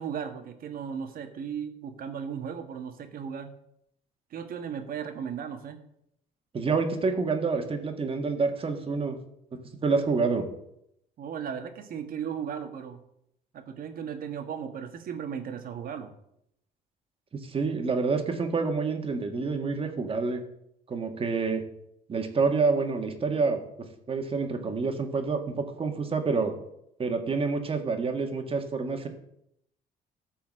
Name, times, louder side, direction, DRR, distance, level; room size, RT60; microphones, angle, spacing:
voice 1, 0.0-3.5 4.3-5.8 11.2-13.0 13.5-16.1, right 7 dB, 60° right, 7 dB, 1.6 m, -36 dB
voice 2, 6.5-9.2 9.5-10.5 17.4-20.4 20.9-21.6 22.1-23.6 24.1-26.6 27.0-29.1, right 4 dB, 35° right, 5 dB, 1.8 m, -28 dB
13.5 x 4.6 x 7.6 m, 0.76 s
cardioid pair, 110°, 17 cm